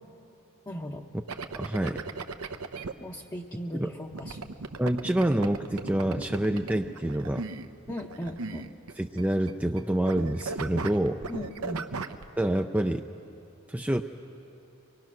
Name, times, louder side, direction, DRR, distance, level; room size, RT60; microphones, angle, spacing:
voice 1, 0.7-1.1 3.0-4.5 7.9-8.7 11.3-11.9, left 1 dB, 20° left, -2 dB, 0.8 m, -37 dB
sound 1, 1.3-2.9 4.1-9.2 9.5-9.8 10.1-12.2, right 4 dB, 85° right, 0.8 m, -37 dB
voice 2, 1.5-2.0 3.7-3.9 4.8-7.5 9.0-11.2 12.4-13.0 13.7-14.0, right 1 dB, 5° right, 5 dB, 0.4 m, -27 dB
24.0 x 21.0 x 6.1 m, 2.9 s
head